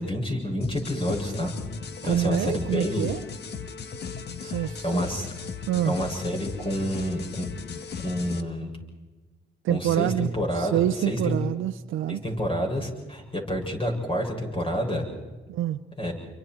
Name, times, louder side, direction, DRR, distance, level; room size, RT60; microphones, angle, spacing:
voice 1, 0.0-1.5 2.0-3.1 4.4-5.3 5.8-7.5 8.0-8.7 9.7-11.4 12.1-15.1 16.0-16.1, equal, 25° left, 1 dB, 7.7 m, -28 dB
sound 1, 0.6-8.4, left 5 dB, 55° left, 1.6 m, -37 dB
voice 2, 2.0-3.2 4.4-5.0 5.7-6.0 9.6-12.2 15.5-15.8, right 12 dB, 85° right, 8 dB, 0.7 m, -27 dB
29.5 x 24.5 x 4.7 m, 1.2 s
cardioid pair, 90°, 20 cm